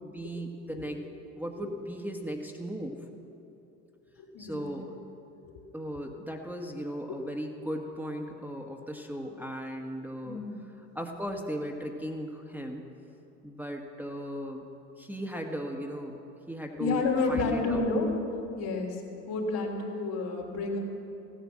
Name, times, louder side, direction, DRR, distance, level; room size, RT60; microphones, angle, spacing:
voice 1, 0.0-1.0 1.3-3.0 4.4-4.9 5.7-10.4 10.9-12.9 13.4-14.6 15.0-16.2 16.5-17.8, equal, 5° right, 0 dB, 1.6 m, -37 dB
voice 2, 4.2-4.7 10.2-10.5 16.8-18.1 18.6-20.8, left 3 dB, 60° left, -1 dB, 3.7 m, -30 dB
16.5 x 9.9 x 7.5 m, 2.8 s
hypercardioid pair, 60°, 44 cm